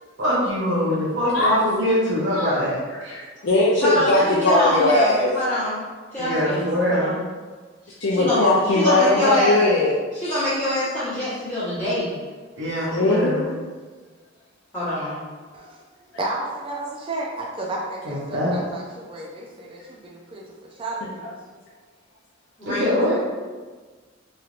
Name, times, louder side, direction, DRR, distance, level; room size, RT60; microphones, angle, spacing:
voice 1, 0.2-2.8 3.0-3.2 6.2-7.2 12.6-13.5 18.0-18.5 22.7-23.2, equal, 65° right, -6 dB, 0.9 m, -23 dB
voice 2, 2.3-2.6 2.9-5.3 6.6-6.7 8.0-9.9 10.2-10.4 12.9-13.4, left 2 dB, 70° left, -7 dB, 0.5 m, -20 dB
voice 3, 3.8-5.8 6.1-6.6 6.9-7.2 8.1-9.6 10.1-12.2 14.7-15.2 22.6-23.0, left 1 dB, 10° left, -15 dB, 1.2 m, -24 dB
voice 4, 16.2-21.3, right 2 dB, 25° right, -2 dB, 0.4 m, -32 dB
3.1 x 2.8 x 2.4 m, 1.4 s
head